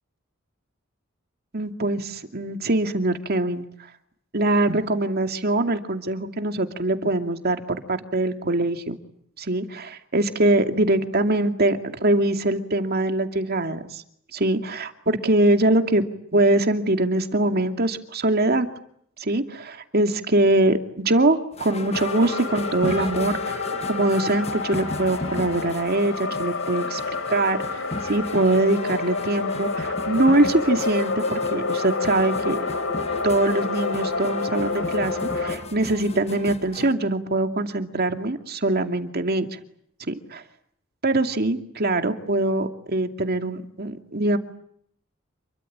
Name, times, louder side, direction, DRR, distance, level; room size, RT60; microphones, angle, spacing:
voice 1, 1.5-3.7 4.3-9.0 9.4-14.0 14.3-16.0 16.3-18.7 19.2-23.6 23.9-27.0 27.3-32.6 33.2-39.5 40.1-40.4 41.0-44.4, right 2 dB, 50° right, 6 dB, 2.5 m, -23 dB
sound 1, 21.5-36.9, left 2 dB, 30° left, 1.4 m, -36 dB
sound 2, 21.9-35.6, left 3 dB, 70° left, 4.8 m, -28 dB
28.5 x 23.5 x 8.8 m, 0.69 s
head